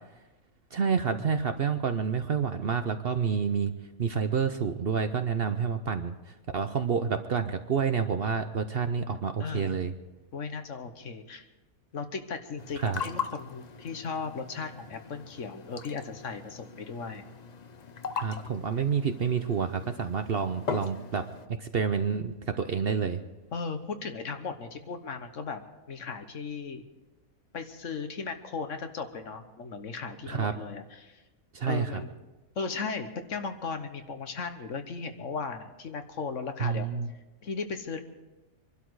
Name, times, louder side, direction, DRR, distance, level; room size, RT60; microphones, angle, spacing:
voice 1, 0.7-3.7 4.0-9.9 12.8-13.0 18.1-23.2 30.3-30.5 31.5-32.0 36.6-37.1, right 6 dB, 50° right, 9 dB, 0.8 m, -29 dB
voice 2, 9.4-9.8 10.3-11.5 11.9-17.3 18.2-18.5 23.5-26.8 27.5-31.2 31.6-32.1 32.5-36.9 37.4-38.0, left 5 dB, 60° left, 8 dB, 1.4 m, -36 dB
sound 1, 12.6-21.5, left 6 dB, 40° left, 0.6 m, -40 dB
24.5 x 12.0 x 4.8 m, 1.1 s
omnidirectional pair, 1.5 m